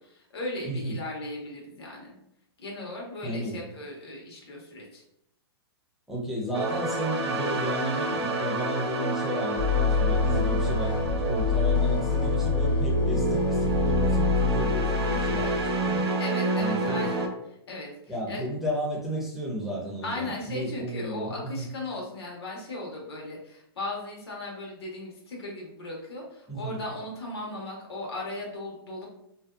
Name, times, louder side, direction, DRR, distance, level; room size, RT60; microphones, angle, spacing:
voice 1, 0.0-2.2 2.6-5.0 16.0-18.4 20.0-29.1, left 1 dB, 75° left, -1 dB, 1.0 m, -37 dB
voice 2, 0.6-0.9 3.2-3.6 6.1-16.0 16.6-17.1 18.1-21.7 26.5-26.8, right 1 dB, 5° right, -4 dB, 0.5 m, -33 dB
sound 1, 6.5-17.3, right 2 dB, 80° right, 0.5 m, -28 dB
sound 2, 9.6-15.8, left 4 dB, 55° left, 0.4 m, -26 dB
2.6 x 2.2 x 2.3 m, 0.77 s
hypercardioid pair, 130°, 13 cm